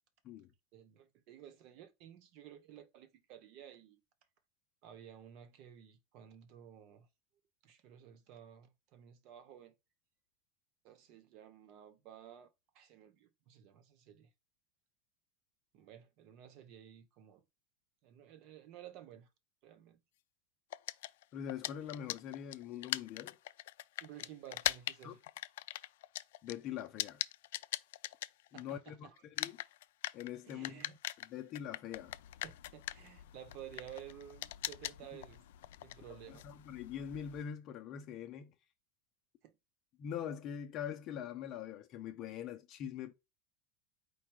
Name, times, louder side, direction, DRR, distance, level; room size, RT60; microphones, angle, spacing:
voice 1, 0.7-4.0 4.8-7.1 7.6-9.7 10.8-12.5 12.7-14.3 15.7-17.4 18.0-19.3 19.6-20.0 24.0-25.2 28.5-29.2 30.5-30.9 32.4-35.4 35.8-36.5 39.4-39.5, right 10 dB, 50° right, 1.1 m, -54 dB
sound 1, 20.7-28.9 29.2-37.4, left 15 dB, 80° left, 0.3 m, -41 dB
voice 2, 21.3-23.4 25.0-25.2 26.4-27.2 28.5-29.6 30.1-32.2 35.1-35.2 36.3-38.5 40.0-43.1, left 9 dB, 40° left, 0.6 m, -43 dB
4.8 x 2.3 x 4.7 m
supercardioid pair, 140°, 0 cm